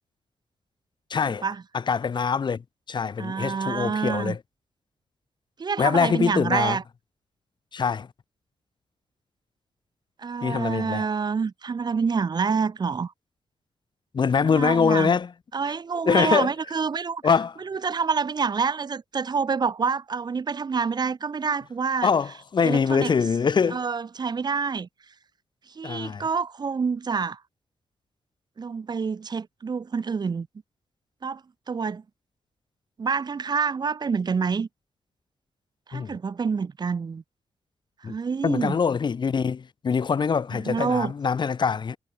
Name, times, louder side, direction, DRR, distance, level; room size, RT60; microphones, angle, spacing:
voice 1, 1.1-1.4 1.7-2.6 2.9-4.4 5.8-6.8 7.7-8.1 10.4-11.0 14.1-15.3 16.0-16.5 17.2-17.5 22.0-23.8 25.8-26.2 35.9-36.2 38.0-38.1 38.4-42.0, left 6 dB, 50° left, 6.5 m, -23 dB
voice 2, 3.2-4.4 5.6-6.8 10.2-13.1 14.4-15.1 15.5-17.2 17.6-22.1 22.6-23.1 23.7-24.9 25.7-27.4 28.6-30.5 31.2-31.4 31.7-32.0 33.0-34.7 35.9-37.2 38.0-38.8 40.5-41.1, right 5 dB, 45° right, 3.2 m, -27 dB
cardioid pair, 80°, 10 cm